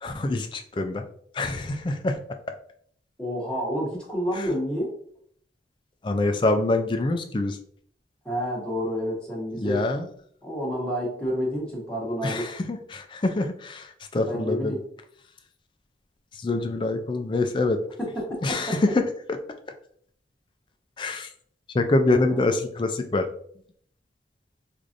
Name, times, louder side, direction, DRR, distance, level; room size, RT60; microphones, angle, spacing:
voice 1, 0.0-1.0 1.3-2.2 4.4-4.5 6.0-7.6 9.6-10.1 12.2-14.7 16.3-17.8 18.4-19.1 21.0-21.3 21.7-23.3, left 2 dB, 25° left, 6 dB, 0.3 m, -25 dB
voice 2, 3.2-4.9 8.2-9.9 10.4-12.5 14.2-14.8 18.0-18.8 22.1-22.4, equal, 5° left, -4 dB, 1.0 m, -29 dB
4.7 x 2.6 x 2.5 m, 0.62 s
head